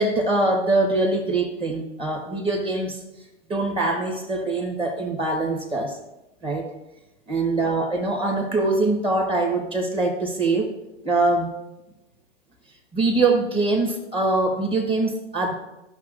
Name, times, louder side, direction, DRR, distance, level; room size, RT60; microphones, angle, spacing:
voice 1, 0.0-3.0 3.5-6.0 6.4-6.7 7.3-10.7 11.0-11.5 12.9-15.5, right 2 dB, 15° right, 2 dB, 1.3 m, -23 dB
14.0 x 5.9 x 2.5 m, 0.96 s
hypercardioid pair, 135°, 37 cm